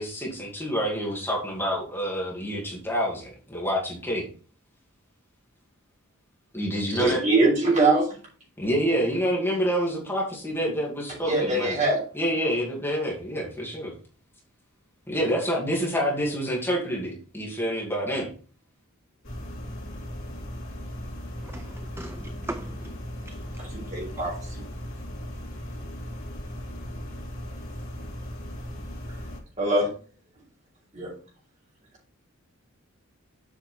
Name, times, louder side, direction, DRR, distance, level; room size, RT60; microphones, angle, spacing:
voice 1, 0.0-4.3 6.5-7.2 8.6-11.8 12.1-13.9 15.1-18.3, equal, 10° left, 2.1 m, -27 dB
voice 2, 6.9-8.2 11.2-12.0 23.6-24.6 29.6-29.9 30.9-31.1, right 2 dB, 35° right, 4.9 m, -23 dB
sound 1, 19.2-29.4, equal, 65° left, 2.6 m, -37 dB
voice 3, 21.5-22.9 23.3-23.4 23.9-24.0, right 2 dB, 10° right, 0.3 m, -39 dB
7.7 x 5.9 x 4.3 m
head